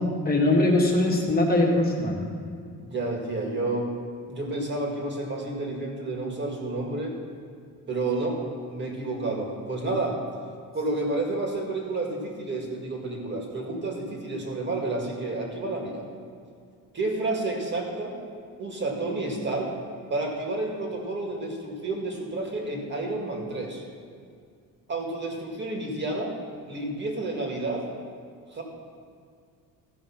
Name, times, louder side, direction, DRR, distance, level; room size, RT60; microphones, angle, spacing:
voice 1, 0.2-2.2, left 2 dB, 25° left, -2 dB, 1.6 m, -21 dB
voice 2, 2.8-3.9 4.3-7.1 7.9-8.4 8.7-10.2 10.7-16.0 16.9-18.2 18.6-19.7 20.1-23.8 24.9-26.3 26.7-27.9 28.5-28.6, right 2 dB, 35° right, 0 dB, 1.9 m, -30 dB
15.0 x 5.2 x 5.8 m, 2.2 s
cardioid pair, 150°, 34 cm